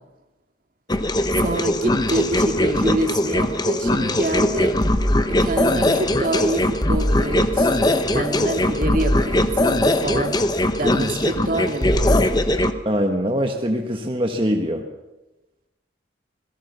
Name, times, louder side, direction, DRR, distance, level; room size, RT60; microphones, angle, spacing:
sound 1, 0.9-12.7, left 1 dB, 20° left, 1.1 m, -20 dB
voice 1, 1.3-4.8 5.3-10.4 10.8-12.5, right 2 dB, 50° right, 5 dB, 2.3 m, -27 dB
voice 2, 12.8-14.8, equal, 30° right, 3 dB, 1.4 m, -23 dB
27.0 x 17.5 x 6.9 m, 1.0 s
head